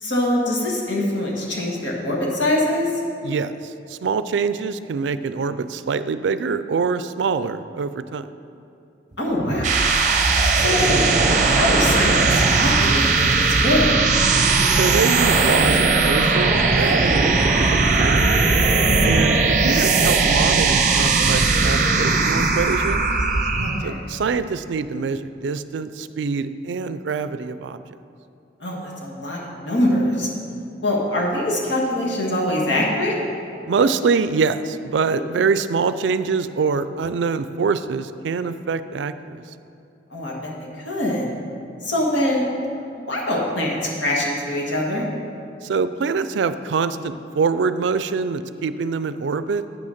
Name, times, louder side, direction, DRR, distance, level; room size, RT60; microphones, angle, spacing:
voice 1, 0.0-2.9 9.2-9.9 10.5-11.1 11.4-14.0 18.8-19.2 23.6-24.0 28.6-30.3 30.8-33.2 40.1-40.5 40.8-41.3 41.8-42.4 43.1-43.8 44.0-45.1, left 1 dB, 85° left, -2 dB, 1.8 m, -23 dB
voice 2, 3.2-8.3 14.7-18.3 19.0-23.1 23.8-27.8 33.7-39.4 45.6-49.6, right 5 dB, 80° right, 13 dB, 0.4 m, -24 dB
sound 1, 9.4-23.9, right 3 dB, 40° right, 0.6 m, -18 dB
8.5 x 6.3 x 5.8 m, 2.6 s
head